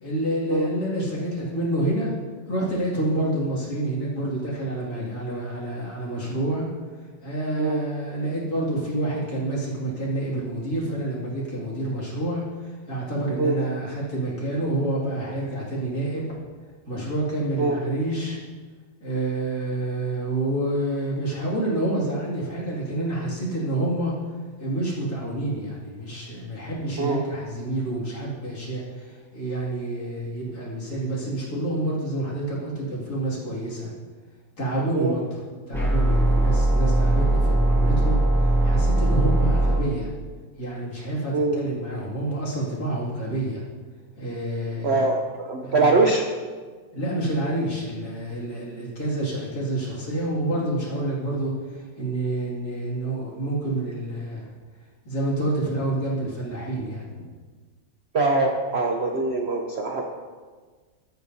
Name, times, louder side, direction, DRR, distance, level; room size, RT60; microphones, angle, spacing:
voice 1, 0.0-2.1 2.5-6.7 7.2-12.4 12.9-16.2 16.9-18.4 19.0-24.1 24.6-33.9 34.6-35.3 35.7-38.2 38.6-40.1 40.6-43.6 44.2-45.1 45.6-45.9 46.9-54.4 55.1-57.2, right 1 dB, 50° left, -5 dB, 2.8 m, -28 dB
sound 1, 35.7-39.7, right 2 dB, ahead, 2.3 m, -20 dB
voice 2, 44.8-46.2 58.1-60.0, right 3 dB, 85° right, 1 dB, 0.5 m, -23 dB
14.5 x 8.4 x 2.7 m, 1.5 s
omnidirectional pair, 2.1 m